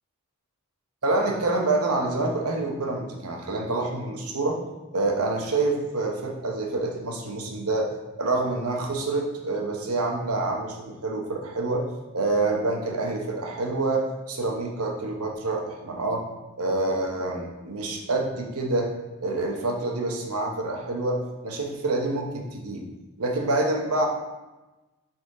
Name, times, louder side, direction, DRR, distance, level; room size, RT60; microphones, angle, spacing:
voice 1, 1.0-4.6 4.9-7.9 8.2-11.9 12.1-16.3 16.6-18.9 19.2-22.8 23.2-24.1, right 2 dB, 85° right, 1 dB, 1.2 m, -27 dB
6.8 x 4.2 x 4.8 m, 1.1 s
head